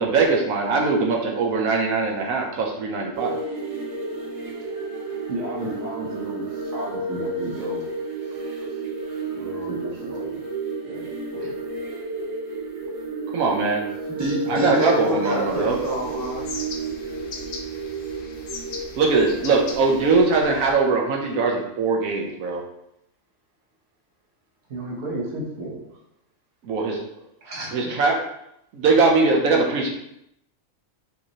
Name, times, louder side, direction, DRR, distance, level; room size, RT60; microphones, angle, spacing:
voice 1, 0.0-3.4 13.3-13.8 14.5-15.8 19.0-22.6 26.6-27.3 27.7-28.2 28.7-29.9, right 4 dB, 85° right, 0 dB, 1.2 m, -21 dB
sound 1, 3.1-20.1, right 3 dB, 35° right, 0.6 m, -32 dB
voice 2, 5.3-6.5 6.7-7.8 9.3-10.4 10.8-11.5 24.7-25.9 27.4-27.8, right 1 dB, 65° right, -1 dB, 1.2 m, -33 dB
voice 3, 14.1-16.5, equal, 15° right, -6 dB, 1.3 m, -26 dB
sound 2, 15.5-20.7, left 4 dB, 75° left, 1.0 m, -39 dB
5.6 x 3.0 x 2.8 m, 0.78 s
omnidirectional pair, 1.4 m